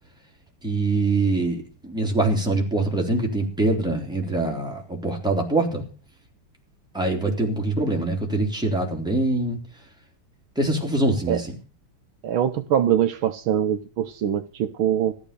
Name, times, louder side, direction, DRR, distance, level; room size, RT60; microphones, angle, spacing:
voice 1, 0.6-5.8 6.9-9.6 10.6-11.5, right 2 dB, ahead, 0 dB, 3.1 m, -24 dB
voice 2, 12.2-15.1, right 10 dB, 75° right, 8 dB, 1.7 m, -23 dB
14.0 x 11.5 x 6.8 m, 0.39 s
omnidirectional pair, 2.4 m